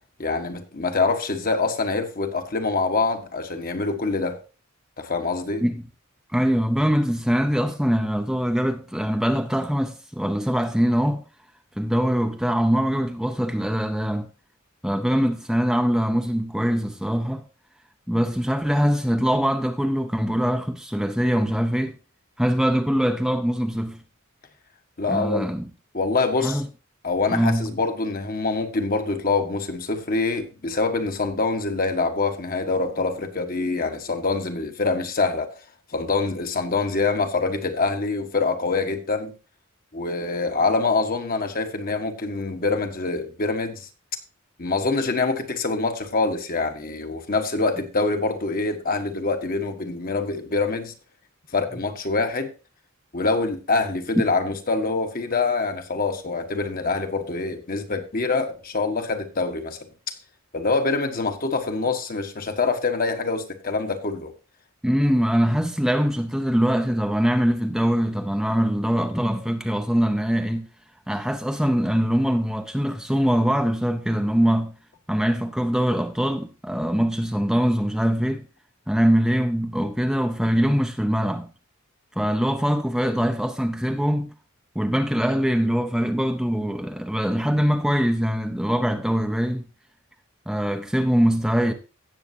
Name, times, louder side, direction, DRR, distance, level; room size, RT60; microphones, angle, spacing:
voice 1, 0.2-4.4 5.0-5.6 25.0-25.5 25.9-26.6 27.0-35.5 35.9-39.3 39.9-43.9 44.6-50.9 51.5-52.5 53.1-59.8 60.1-60.2 60.5-64.3, left 3 dB, 45° left, 1.3 m, -25 dB
voice 2, 6.3-11.2 11.8-14.3 14.8-17.4 18.1-22.0 22.4-24.0 25.1-25.7 26.4-26.7 27.3-27.7 64.8-70.7 71.1-74.8 75.1-78.4 78.9-81.5 82.2-84.3 84.7-89.7 90.5-91.7, equal, ahead, 0.6 m, -23 dB
17.0 x 7.2 x 2.7 m
head